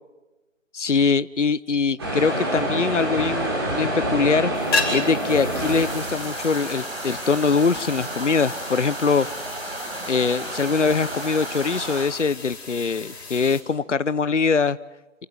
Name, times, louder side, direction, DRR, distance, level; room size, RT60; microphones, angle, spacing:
voice 1, 0.7-4.5 4.9-9.3 10.1-14.8, left 5 dB, 65° left, 17 dB, 0.9 m, -22 dB
sound 1, 2.0-6.8 7.2-7.5 7.9-8.6 10.2-10.3 10.8-11.7, right 1 dB, 20° right, 5.5 m, -28 dB
sound 2, 4.5-13.6, left 3 dB, 20° left, 4.7 m, -34 dB
sound 3, 5.6-12.1, right 1 dB, 50° right, 7.5 m, -33 dB
28.5 x 23.5 x 5.8 m, 1.1 s
figure-of-eight pair, 165°, 39 cm